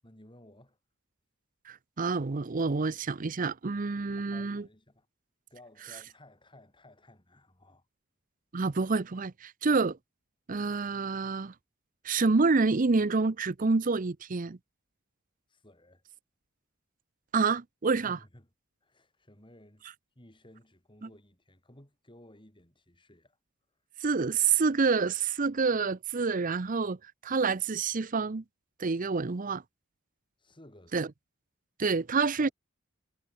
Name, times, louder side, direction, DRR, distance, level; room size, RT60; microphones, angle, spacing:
voice 1, 0.0-0.8 4.1-5.1 5.5-7.9 15.5-16.0 17.9-18.5 18.8-19.9 20.2-23.4 30.4-31.1 32.4-32.5, left 1 dB, 25° left, 4.5 m, -56 dB
voice 2, 1.7-4.6 8.5-10.0 10.5-11.5 12.0-14.6 17.3-18.2 21.0-21.1 24.0-27.0 27.2-28.4 28.8-29.6 30.9-31.1 31.8-32.5, right 4 dB, 40° right, 0.6 m, -28 dB
head